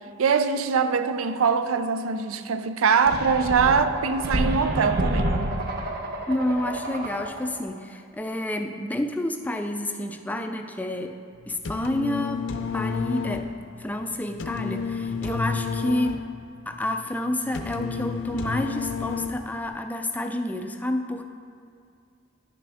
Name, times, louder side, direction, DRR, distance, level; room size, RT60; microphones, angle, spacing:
voice 1, 0.2-5.3, right 5 dB, 85° right, 0.5 m, -23 dB
sound 1, 3.1-7.6, right 1 dB, 50° right, 0.8 m, -29 dB
voice 2, 6.3-11.2 11.5-13.5 13.8-16.3 16.7-21.2, left 1 dB, 10° left, 0.3 m, -29 dB
sound 2, 11.4-19.7, left 5 dB, 60° left, 0.6 m, -31 dB
10.5 x 6.0 x 3.4 m
head